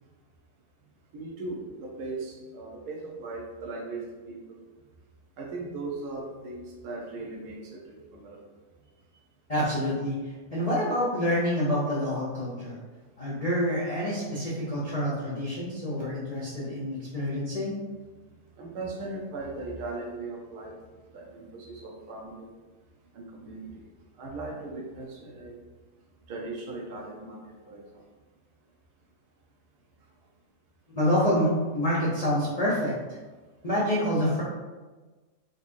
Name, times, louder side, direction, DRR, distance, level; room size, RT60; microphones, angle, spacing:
voice 1, 1.1-4.6 5.4-8.4 18.6-20.8 21.1-22.5 23.1-23.8 24.2-25.6 26.3-27.8, right 3 dB, 75° right, -1 dB, 1.2 m, -38 dB
voice 2, 9.5-10.2 10.5-12.8 13.2-17.8 31.0-32.9 33.6-34.4, equal, 55° left, -7 dB, 0.4 m, -27 dB
4.0 x 2.7 x 2.5 m, 1.3 s
omnidirectional pair, 1.7 m